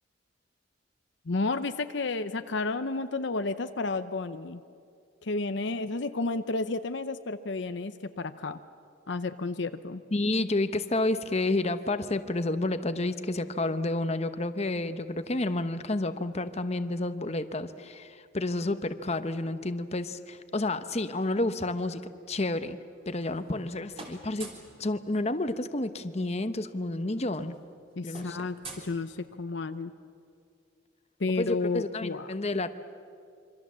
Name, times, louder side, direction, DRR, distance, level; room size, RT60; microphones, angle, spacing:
voice 1, 1.3-4.6 5.2-8.6 9.1-10.0 18.6-18.7 28.0-29.9 31.2-32.3, left 3 dB, 60° left, 10 dB, 0.7 m, -31 dB
voice 2, 10.1-22.0 22.3-22.8 23.1-24.5 24.8-27.6 28.0-28.5 31.4-32.7, left 2 dB, 30° left, 10 dB, 0.9 m, -30 dB
sound 1, 22.9-23.7 23.9-24.8 26.1-26.2 26.5-26.7 27.0-29.6, right 3 dB, 30° right, 3.6 m, -47 dB
26.5 x 25.0 x 7.5 m, 2.4 s
head